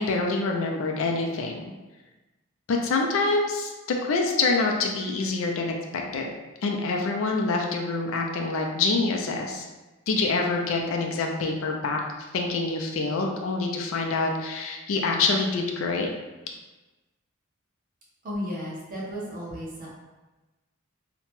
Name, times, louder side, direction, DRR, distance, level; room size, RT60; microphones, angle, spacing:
voice 1, 0.0-1.7 2.7-6.3 6.6-9.6 10.1-12.0 12.3-16.1, left 3 dB, 70° left, 1 dB, 0.4 m, -26 dB
voice 2, 18.2-19.9, equal, 40° right, -6 dB, 0.9 m, -34 dB
2.8 x 2.1 x 3.0 m, 1.1 s
head